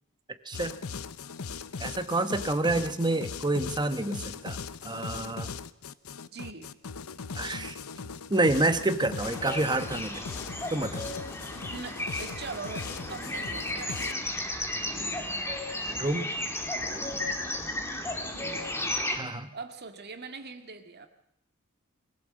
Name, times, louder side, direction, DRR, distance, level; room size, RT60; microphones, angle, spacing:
voice 1, 0.4-0.8 1.8-4.6 4.8-5.5 7.3-7.8 8.3-10.2 10.7-11.1 15.9-16.3 19.1-19.5, right 2 dB, 20° right, 10 dB, 1.1 m, -28 dB
sound 1, 0.5-14.1, left 5 dB, 80° left, 0.8 m, -39 dB
voice 2, 6.3-6.7 11.7-15.5 18.3-18.6 19.5-21.1, right 4 dB, 50° right, 7 dB, 2.0 m, -43 dB
sound 2, 9.2-19.2, left 1 dB, 10° left, 2.7 m, -34 dB
22.5 x 16.0 x 7.6 m, 0.76 s
head